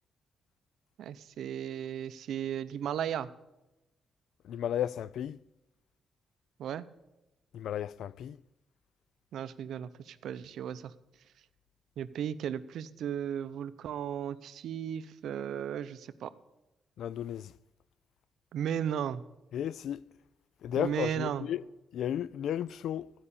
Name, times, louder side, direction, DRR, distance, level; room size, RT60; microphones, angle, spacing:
voice 1, 1.0-3.3 6.6-6.8 9.3-10.9 12.0-16.3 18.5-19.2 20.8-21.5, right 9 dB, 75° right, 0.6 m, -35 dB
voice 2, 4.4-5.4 7.5-8.4 17.0-17.6 19.5-20.0 20.6-21.6 21.9-23.1, left 10 dB, 80° left, 0.3 m, -34 dB
14.0 x 5.5 x 8.5 m
cardioid pair, 115°, 0 cm